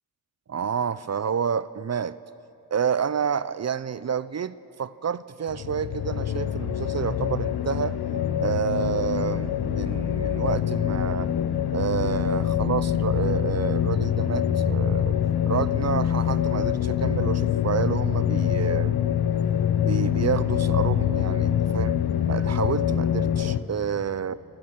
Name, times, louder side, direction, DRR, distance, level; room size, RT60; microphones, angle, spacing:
voice 1, 0.5-2.2 2.7-8.0 8.4-11.3 11.7-15.2 15.4-19.0 19.8-22.0 22.3-24.4, right 7 dB, 45° right, 17 dB, 0.7 m, -29 dB
sound 1, 5.5-23.6, left 10 dB, 80° left, 1.0 m, -25 dB
27.5 x 14.5 x 7.5 m, 2.9 s
supercardioid pair, 45°, 38 cm